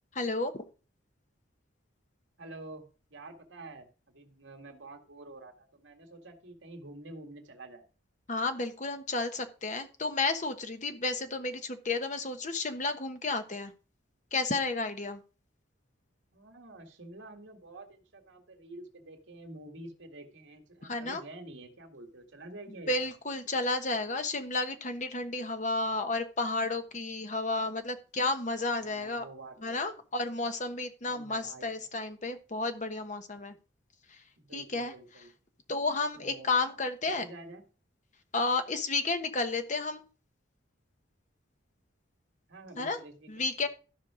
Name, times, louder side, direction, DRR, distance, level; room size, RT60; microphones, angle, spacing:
voice 1, 0.1-0.6 8.3-13.7 14.3-15.2 20.9-21.2 22.9-29.2 29.6-33.5 34.5-34.9 35.7-37.2 38.3-40.0 42.8-43.0 43.3-43.7, left 3 dB, 40° left, 8 dB, 1.1 m, -32 dB
voice 2, 2.4-7.9 16.3-23.1 25.6-26.0 28.7-29.9 31.0-31.9 34.4-35.3 36.1-36.5 37.1-37.6 42.5-43.7, right 2 dB, 75° right, 3 dB, 2.2 m, -48 dB
13.5 x 5.7 x 5.0 m, 0.36 s
head